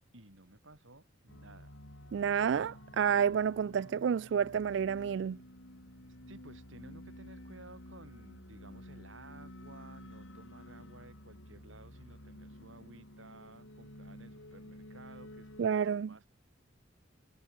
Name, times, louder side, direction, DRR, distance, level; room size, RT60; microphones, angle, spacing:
voice 1, 0.0-1.8 6.3-16.3, right 2 dB, 85° right, 5.4 m, -55 dB
sound 1, 1.3-15.7, left 1 dB, 85° left, 7.1 m, -51 dB
voice 2, 2.1-5.4 15.6-16.1, right 7 dB, 65° right, 0.3 m, -30 dB
head